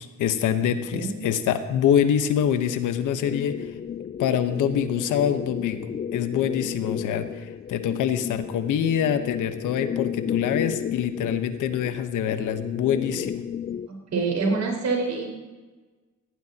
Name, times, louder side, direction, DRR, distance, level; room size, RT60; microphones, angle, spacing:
voice 1, 0.0-3.8 4.2-13.4, left 9 dB, 85° left, 9 dB, 1.2 m, -25 dB
sound 1, 2.4-13.9, left 8 dB, 30° left, 0.4 m, -33 dB
voice 2, 13.9-15.3, right 4 dB, 65° right, 0 dB, 5.0 m, -26 dB
17.5 x 17.5 x 3.0 m, 1.3 s
cardioid pair, 90°, 30 cm